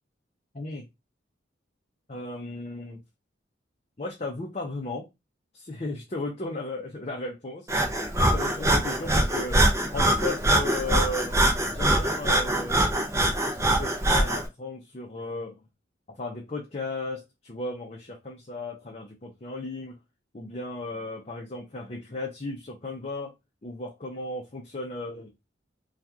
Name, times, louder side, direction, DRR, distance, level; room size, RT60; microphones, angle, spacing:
voice 1, 0.5-0.8 2.1-3.0 4.0-5.1 5.5-7.7 8.3-9.6 9.9-11.4 11.7-12.9 13.4-15.6 16.2-20.0 20.3-23.3 23.6-25.3, left 2 dB, 35° left, -1 dB, 0.6 m, -35 dB
Breathing, 7.7-14.5, right 1 dB, 15° right, 0.5 m, -23 dB
2.9 x 2.4 x 3.5 m, 0.22 s
head